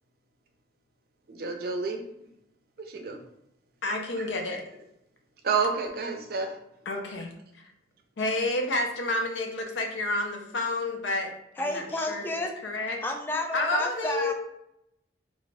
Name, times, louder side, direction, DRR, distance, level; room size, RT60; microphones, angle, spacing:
voice 1, 1.3-2.3 2.8-3.2 4.2-4.3 5.4-6.6, right 4 dB, 55° right, 4 dB, 0.5 m, -30 dB
voice 2, 3.8-4.7 6.9-7.7 8.2-12.3 12.6-13.0 13.5-14.3, left 2 dB, 80° left, 3 dB, 0.5 m, -30 dB
voice 3, 11.6-12.6 13.0-14.3, left 1 dB, 10° left, 2 dB, 0.3 m, -31 dB
2.4 x 2.2 x 3.9 m, 0.80 s
head